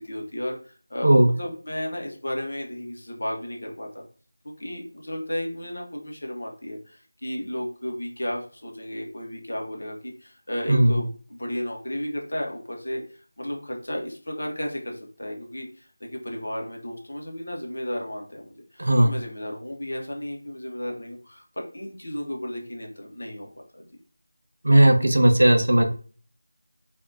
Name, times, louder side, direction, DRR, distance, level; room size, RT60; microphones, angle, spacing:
voice 1, 0.0-4.0 4.4-13.0 13.4-21.4 21.7-23.9, equal, 50° left, 1 dB, 0.6 m, -34 dB
voice 2, 10.7-11.0 18.8-19.1 24.6-25.9, right 1 dB, 50° right, 4 dB, 0.4 m, -17 dB
2.5 x 2.1 x 2.5 m, 0.41 s
figure-of-eight pair, 180°, 0 cm